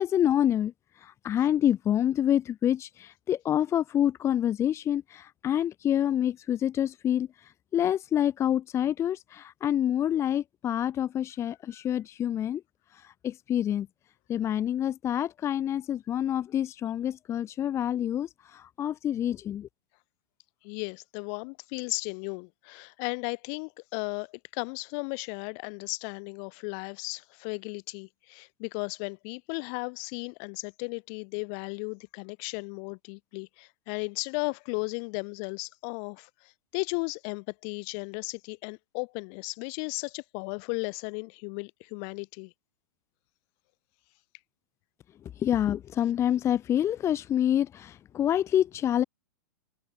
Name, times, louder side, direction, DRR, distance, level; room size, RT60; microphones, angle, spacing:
voice 1, 0.0-12.6 12.9-13.9 14.3-19.7 45.4-49.0, left 10 dB, 25° left, 0.9 m, -27 dB
voice 2, 20.6-42.5, left 40 dB or more, 45° left, 2.2 m, -35 dB
hypercardioid pair, 120°, 11 cm